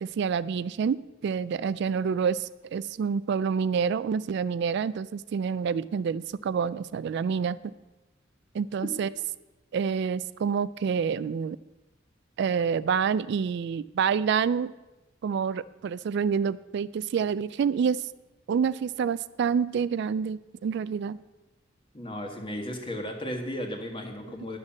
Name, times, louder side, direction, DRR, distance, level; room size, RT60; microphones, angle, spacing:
voice 1, 0.0-7.6 8.5-9.1 9.7-11.6 12.4-14.7 15.2-18.0 18.5-21.2, right 6 dB, 60° right, 17 dB, 0.3 m, -27 dB
voice 2, 21.9-24.6, equal, 25° left, 3 dB, 1.7 m, -35 dB
10.5 x 6.5 x 7.3 m, 1.1 s
head